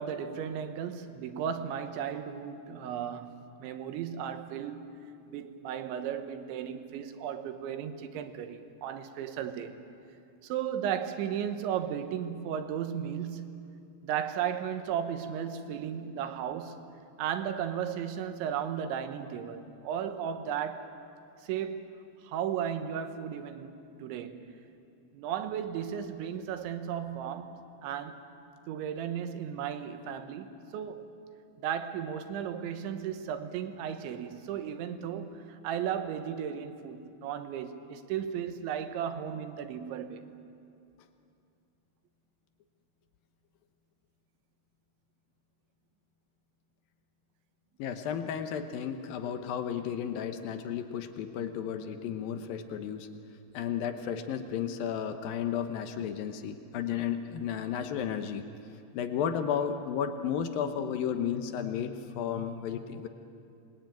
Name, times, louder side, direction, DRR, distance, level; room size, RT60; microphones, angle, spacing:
voice 1, 0.0-4.9 5.3-9.7 10.4-13.6 14.0-16.8 17.2-20.9 21.4-22.0 22.2-24.6 25.1-28.2 28.7-31.1 31.6-40.2, right 8 dB, 75° right, 3.4 m, -35 dB
voice 2, 47.8-53.1 53.5-58.5 58.9-63.1, left 8 dB, 75° left, 2.1 m, -33 dB
26.5 x 20.5 x 9.1 m
omnidirectional pair, 5.6 m